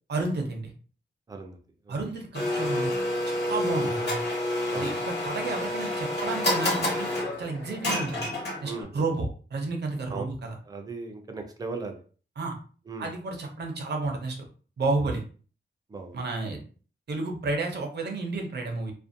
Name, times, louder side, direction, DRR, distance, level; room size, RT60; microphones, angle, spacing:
voice 1, 0.1-0.7 1.9-2.9 3.3-4.2 4.7-7.1 7.4-8.3 8.6-10.6 12.4-12.6 13.0-14.4 14.8-15.2 16.1-16.6 17.1-18.9, right 3 dB, 60° right, 2 dB, 0.6 m, -31 dB
voice 2, 1.3-1.6 1.9-2.0 3.7-3.9 4.7-4.9 8.6-9.0 10.1-10.3 10.7-12.0 12.9-13.1 15.0-15.1 15.9-16.2, right 3 dB, 20° right, 5 dB, 0.3 m, -37 dB
Domestic sounds home sounds, 2.3-8.8, left 1 dB, 60° left, 1.1 m, -29 dB
2.5 x 2.1 x 2.5 m, 0.40 s
wide cardioid pair, 175°, 19 cm